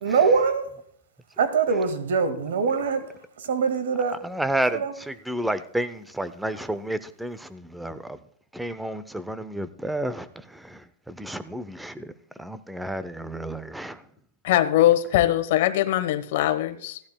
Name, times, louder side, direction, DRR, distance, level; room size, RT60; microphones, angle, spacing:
voice 1, 0.0-0.6 1.4-3.0 3.5-4.2 4.8-4.9, right 5 dB, 75° right, 1.9 m, -22 dB
voice 2, 4.1-8.2 8.5-12.1 12.4-14.0, right 1 dB, 5° right, 0.5 m, -31 dB
voice 3, 14.4-17.0, left 13 dB, 55° left, 1.2 m, -21 dB
16.5 x 11.5 x 2.3 m
supercardioid pair, 160°, 0 cm